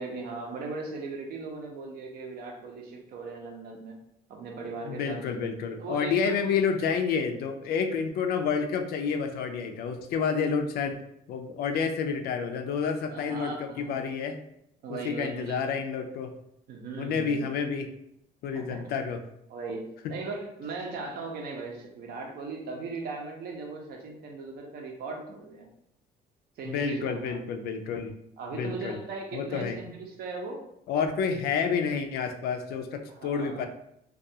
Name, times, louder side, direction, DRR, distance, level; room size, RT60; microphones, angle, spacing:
voice 1, 0.0-4.0 4.3-5.2 5.8-6.8 13.1-13.9 14.8-15.7 16.7-17.5 18.5-18.8 19.5-25.7 26.6-27.4 28.4-30.6 33.1-33.7, right 3 dB, 65° right, 1 dB, 0.6 m, -38 dB
voice 2, 4.8-11.0 11.3-14.4 14.9-16.3 17.0-17.9 18.4-19.2 26.7-28.2 28.5-29.0 29.3-29.8 30.9-33.7, left 6 dB, 65° left, 6 dB, 0.4 m, -29 dB
2.3 x 2.3 x 2.7 m, 0.76 s
cardioid pair, 110°, 17 cm